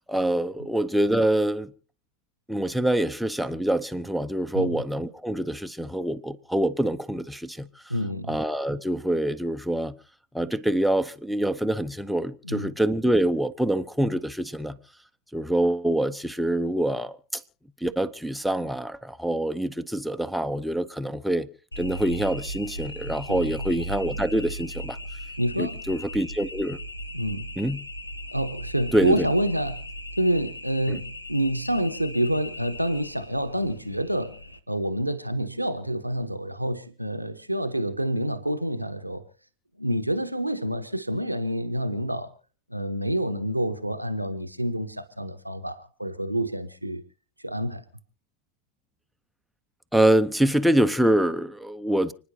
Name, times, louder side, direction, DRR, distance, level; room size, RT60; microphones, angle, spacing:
voice 1, 0.1-1.7 2.5-7.9 8.3-10.0 10.3-14.8 15.3-17.4 17.8-21.5 21.8-25.0 25.6-26.8 27.6-27.8 28.9-29.3 30.9-31.0 49.9-52.1, right 1 dB, ahead, 0.8 m, -25 dB
voice 2, 7.9-8.4 12.4-12.7 23.3-23.6 25.4-25.8 27.1-27.5 28.3-29.9 30.2-34.4 34.7-39.3 39.8-42.3 42.7-47.0 47.4-47.8, right 1 dB, 90° right, 1.0 m, -28 dB
sound 1, 21.7-34.6, equal, 85° left, 1.0 m, -37 dB
30.0 x 10.0 x 2.8 m
figure-of-eight pair, 90°, 0 cm